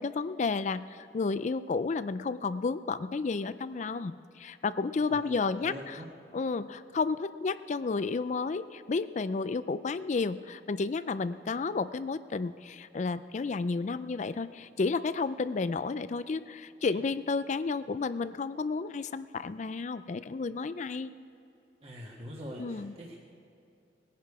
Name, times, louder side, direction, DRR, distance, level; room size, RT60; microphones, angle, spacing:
voice 1, 0.0-6.0 6.3-21.1 22.6-22.9, left 4 dB, 40° left, 14 dB, 0.4 m, -32 dB
voice 2, 5.6-6.1 16.9-17.0 21.8-23.2, equal, 35° right, -3 dB, 1.5 m, -43 dB
19.5 x 10.5 x 4.8 m, 2.7 s
head